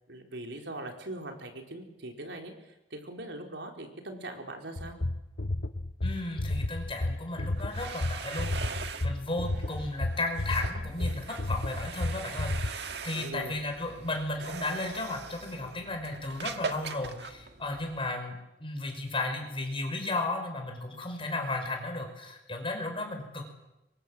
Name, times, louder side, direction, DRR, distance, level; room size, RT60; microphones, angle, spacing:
voice 1, 0.1-5.0 13.1-13.6, right 1 dB, 80° right, 3 dB, 4.3 m, -41 dB
sound 1, 4.8-12.7, left 1 dB, 55° left, 1.0 m, -31 dB
voice 2, 6.0-23.5, left 2 dB, 30° left, 4 dB, 5.6 m, -35 dB
sound 2, 7.5-18.1, right 5 dB, 65° right, 1.7 m, -41 dB
26.5 x 24.0 x 7.5 m, 0.94 s
head